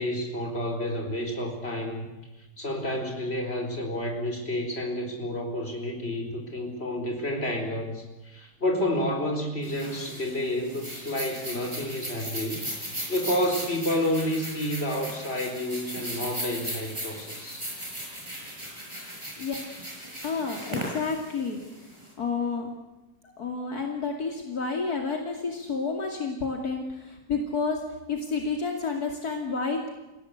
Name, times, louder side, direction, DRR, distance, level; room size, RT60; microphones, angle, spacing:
voice 1, 0.0-2.1 2.6-12.7 13.1-17.7, left 1 dB, 40° left, 3 dB, 4.6 m, -30 dB
sound 1, 9.6-22.1, equal, 15° right, 6.8 m, -37 dB
voice 2, 20.2-21.6 22.2-22.7 23.2-27.8 28.1-29.9, left 4 dB, 70° left, 2 dB, 3.1 m, -30 dB
29.0 x 17.0 x 8.2 m, 1.0 s
omnidirectional pair, 1.7 m